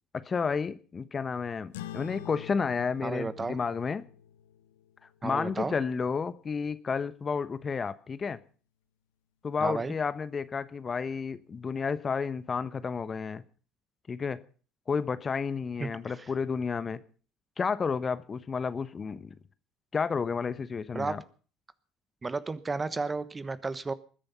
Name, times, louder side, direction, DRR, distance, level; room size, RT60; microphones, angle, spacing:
voice 1, 0.1-4.0 5.2-8.4 9.4-13.4 14.1-14.4 14.9-17.0 17.6-19.3 19.9-21.2, left 5 dB, 30° left, 15 dB, 1.0 m, -31 dB
sound 1, 1.7-6.6, left 11 dB, 75° left, 0.8 m, -47 dB
voice 2, 3.0-3.6 5.2-5.7 9.6-9.9 15.8-15.9 16.2-16.3 20.9-21.2 22.2-23.9, right 3 dB, 20° right, 15 dB, 1.1 m, -32 dB
20.5 x 10.5 x 5.6 m, 0.41 s
figure-of-eight pair, 60°, 0 cm